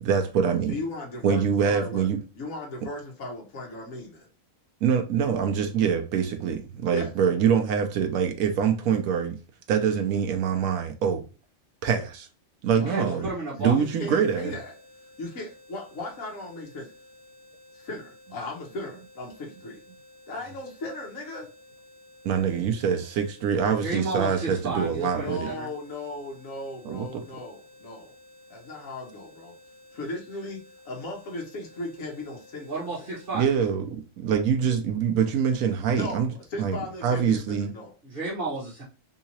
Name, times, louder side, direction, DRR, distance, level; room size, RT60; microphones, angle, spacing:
voice 1, 0.0-0.7 1.2-2.2 4.8-9.4 9.7-11.2 11.8-12.3 12.6-13.3 13.6-14.5 22.2-25.5 26.8-27.2 33.3-36.3 36.6-37.7, right 7 dB, 85° right, 1.1 m, -24 dB
voice 2, 0.7-2.1 2.4-4.3 6.9-7.1 12.8-13.2 13.6-14.8 15.2-16.9 17.7-19.8 20.3-21.5 25.1-28.1 28.5-29.5 29.9-33.1 35.9-37.9, left 2 dB, 75° left, 1.4 m, -37 dB
voice 3, 12.9-13.8 23.8-25.7 32.6-33.5 38.0-38.8, right 2 dB, 45° right, 1.4 m, -32 dB
sound 1, 13.8-33.5, left 1 dB, 90° left, 1.5 m, -53 dB
3.6 x 2.8 x 2.8 m
omnidirectional pair, 1.4 m